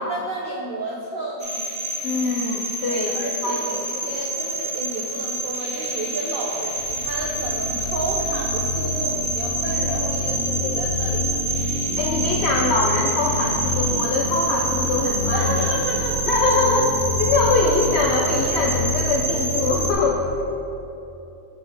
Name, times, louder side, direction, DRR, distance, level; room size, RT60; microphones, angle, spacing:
voice 1, 0.0-1.6 2.9-11.4 15.3-16.4 20.4-20.5, right 2 dB, 70° right, -3 dB, 0.5 m, -31 dB
sound 1, 1.4-19.9, equal, 60° left, 1.7 m, -25 dB
voice 2, 2.0-3.6 10.6-10.7 12.0-15.8 16.3-20.2, left 3 dB, 75° left, -1 dB, 0.6 m, -23 dB
7.1 x 5.4 x 3.4 m, 2.9 s
omnidirectional pair, 1.6 m